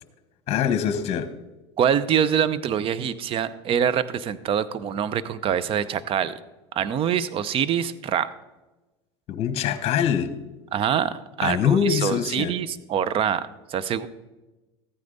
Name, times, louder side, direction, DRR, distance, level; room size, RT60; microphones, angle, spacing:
voice 1, 0.5-1.3 9.3-10.3 11.4-12.5, left 8 dB, 45° left, 10 dB, 1.2 m, -23 dB
voice 2, 1.8-6.4 6.7-8.3 10.7-14.1, right 8 dB, 40° right, 16 dB, 0.7 m, -25 dB
14.0 x 9.3 x 4.0 m, 1.1 s
supercardioid pair, 105°, 15 cm